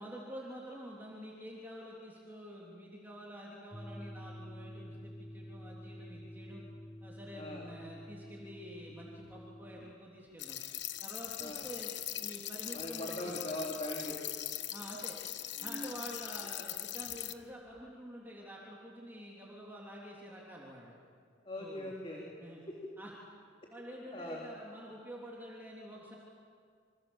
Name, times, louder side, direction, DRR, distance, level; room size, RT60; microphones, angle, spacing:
voice 1, 0.0-6.6 7.0-10.6 11.0-11.9 12.2-13.4 14.7-15.2 15.6-20.9 21.6-21.9 22.4-22.6 23.0-23.1 23.7-26.2, equal, 10° right, -4 dB, 3.4 m, -48 dB
sound 1, 3.7-9.9, equal, 5° left, 1.2 m, -49 dB
sound 2, 9.2-10.0 10.3-10.4 10.7-10.9 11.2-11.3 11.5-11.8 12.4-13.4 14.1-14.2 14.5-14.6 14.9-16.0 16.9-17.9, equal, 30° right, 2.2 m, -54 dB
sound 3, 10.4-17.3, left 13 dB, 65° left, 1.1 m, -41 dB
voice 2, 12.7-14.2 21.4-22.2 22.7-22.8 24.1-24.4, left 1 dB, 30° left, -2 dB, 3.5 m, -40 dB
28.0 x 26.5 x 7.3 m, 2.2 s
head